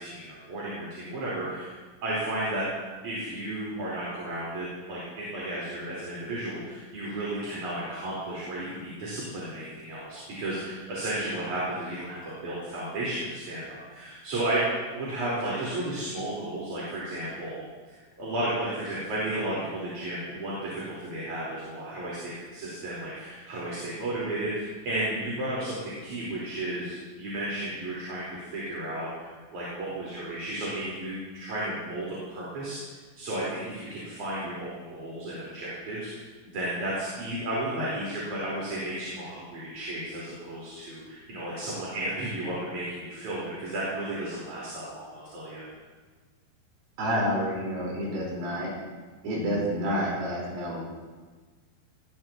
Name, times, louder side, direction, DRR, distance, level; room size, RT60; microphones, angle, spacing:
voice 1, 0.0-1.7 2.0-2.7 3.0-17.6 17.9-32.8 33.2-45.6, right 1 dB, 40° right, -8 dB, 5.7 m, -33 dB
voice 2, 47.0-48.7 49.2-50.8, equal, 60° right, -4 dB, 7.1 m, -29 dB
22.0 x 20.0 x 3.1 m, 1.4 s
omnidirectional pair, 5.9 m